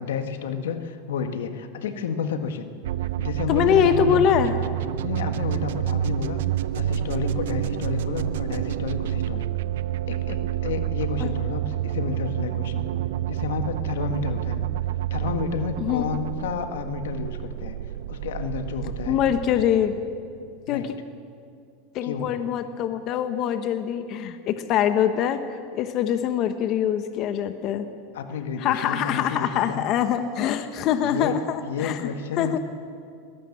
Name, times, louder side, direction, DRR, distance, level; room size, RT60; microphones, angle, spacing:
voice 1, 0.0-2.7 3.0-4.2 5.0-6.4 6.7-9.5 10.1-12.8 13.3-14.7 15.1-17.8 18.1-19.2 20.7-20.9 22.0-22.3 28.1-29.8 31.0-32.6, left 6 dB, 90° left, 8 dB, 1.6 m, -31 dB
sound 1, 2.8-20.6, right 12 dB, 80° right, 0.6 m, -29 dB
voice 2, 3.5-4.6 11.2-11.3 15.8-16.1 19.1-20.0 20.7-20.9 21.9-25.4 25.7-27.9 28.6-32.0 32.4-32.6, left 9 dB, 45° left, 9 dB, 1.2 m, -23 dB
21.0 x 18.0 x 7.3 m, 2.3 s
supercardioid pair, 130°, 0 cm